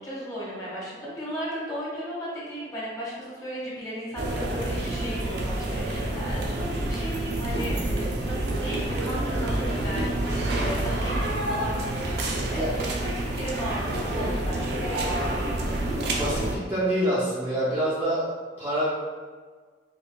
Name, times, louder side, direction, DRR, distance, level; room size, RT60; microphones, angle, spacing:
voice 1, 0.0-15.8, equal, 20° left, -7 dB, 1.2 m, -35 dB
sound 1, 4.2-16.6, right 1 dB, 65° right, 0.5 m, -28 dB
voice 2, 16.1-18.9, right 1 dB, 10° right, -9 dB, 0.5 m, -27 dB
5.3 x 2.5 x 2.3 m, 1.5 s
head